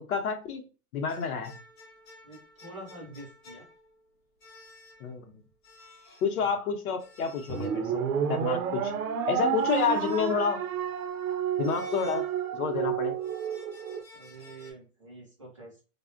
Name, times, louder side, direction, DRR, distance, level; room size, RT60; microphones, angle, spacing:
voice 1, 0.1-0.6 0.9-1.5 5.0-5.2 6.2-8.9 9.3-10.6 11.6-12.3 12.5-13.1, left 6 dB, 75° left, 6 dB, 0.7 m, -29 dB
sound 1, 1.1-4.0 4.4-5.2 5.6-6.3 7.0-8.2 9.6-10.6 11.6-12.8 13.2-14.7, left 2 dB, 35° left, 0.6 m, -53 dB
voice 2, 2.2-3.7 6.4-6.7 9.5-9.7 14.1-15.8, right 2 dB, 25° right, -4 dB, 0.3 m, -47 dB
sound 2, 7.5-14.0, right 8 dB, 75° right, 0.6 m, -30 dB
3.2 x 2.1 x 2.4 m, 0.35 s
hypercardioid pair, 170°, 44 cm